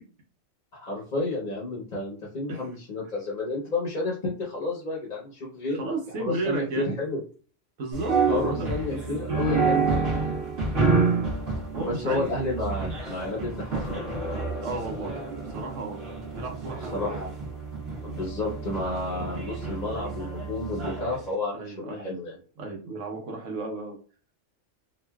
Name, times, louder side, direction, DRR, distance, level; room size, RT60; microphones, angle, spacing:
voice 1, 0.7-5.9 6.2-7.2 8.3-10.1 11.8-14.1 16.9-17.3 18.0-22.4, left 2 dB, 45° left, -4 dB, 0.8 m, -31 dB
voice 2, 5.7-6.9 7.8-8.7 9.1-9.8 11.7-12.3 14.6-15.1 15.5-16.0 16.3-17.0 21.5-22.1 22.6-24.0, right 2 dB, 90° right, 1 dB, 1.2 m, -33 dB
sound 1, 7.9-21.2, right 4 dB, 60° right, 1.2 m, -29 dB
sound 2, 13.6-18.5, left 4 dB, 85° left, 1.1 m, -42 dB
3.0 x 2.5 x 2.2 m, 0.39 s
omnidirectional pair, 1.2 m